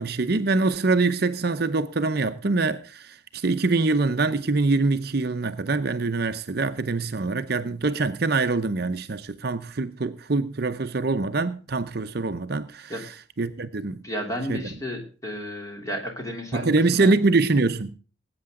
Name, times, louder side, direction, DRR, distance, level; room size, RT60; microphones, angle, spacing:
voice 1, 0.0-13.1 13.4-14.0 14.5-14.6 16.5-18.0, right 3 dB, 55° right, 0.7 m, -24 dB
voice 2, 14.0-17.1, equal, 15° left, 3.1 m, -33 dB
19.0 x 8.6 x 3.7 m
head